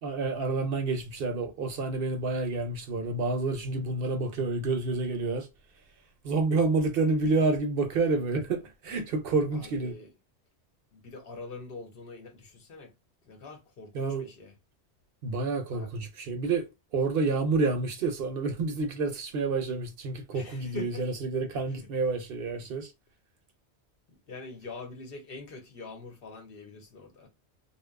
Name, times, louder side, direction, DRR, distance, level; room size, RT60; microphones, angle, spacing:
voice 1, 0.0-5.5 6.2-9.9 13.9-14.3 15.2-22.9, right 3 dB, 65° right, 0.7 m, -29 dB
voice 2, 9.5-10.1 10.9-12.9 13.2-14.5 15.7-15.9 20.3-21.1 21.7-21.8 24.1-27.3, left 3 dB, 60° left, 0.9 m, -44 dB
2.7 x 2.2 x 2.2 m
omnidirectional pair, 1.2 m